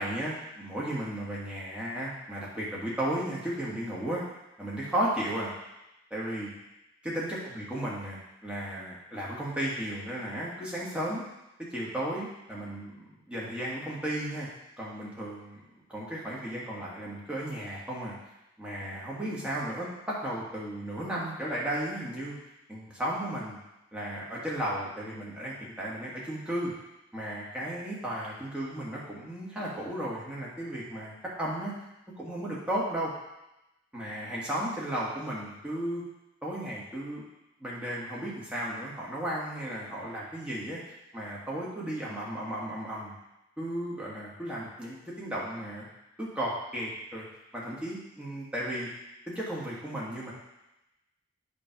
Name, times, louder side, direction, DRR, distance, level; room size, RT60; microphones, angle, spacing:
voice 1, 0.0-4.2 4.6-5.5 6.1-6.5 7.0-11.2 11.7-14.5 14.8-15.6 15.9-18.1 18.6-22.3 22.7-23.6 23.9-26.7 27.1-31.7 32.2-33.1 33.9-36.0 36.4-37.2 37.6-40.8 41.1-43.1 43.6-45.8 46.2-47.2 47.5-48.9 49.3-50.3, right 1 dB, 5° right, -6 dB, 1.5 m, -34 dB
8.5 x 3.2 x 5.8 m, 0.94 s
head